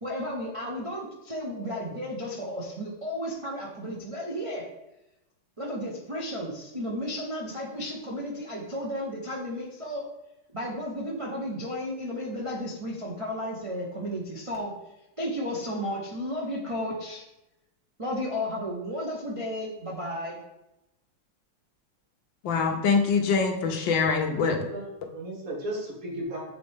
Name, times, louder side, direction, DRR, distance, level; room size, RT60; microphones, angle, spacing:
voice 1, 0.0-4.6 5.6-10.0 10.5-14.7 15.2-17.2 18.0-20.4, equal, 35° right, -4 dB, 0.5 m, -33 dB
voice 2, 22.4-24.6, left 5 dB, 85° left, 4 dB, 1.5 m, -24 dB
voice 3, 24.3-26.5, right 1 dB, 50° right, -2 dB, 1.7 m, -36 dB
7.5 x 4.3 x 3.4 m, 0.92 s
omnidirectional pair, 2.0 m